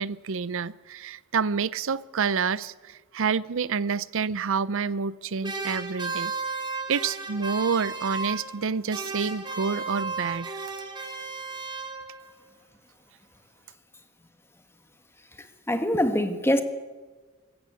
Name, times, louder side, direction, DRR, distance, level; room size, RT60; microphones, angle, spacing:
voice 1, 0.0-6.3 6.9-10.6, right 5 dB, 65° right, 0.6 m, -28 dB
sound 1, 5.4-8.6 8.9-12.3, right 4 dB, 20° right, 2.7 m, -34 dB
voice 2, 15.7-16.6, left 1 dB, 10° left, 1.6 m, -23 dB
24.5 x 15.0 x 8.3 m
head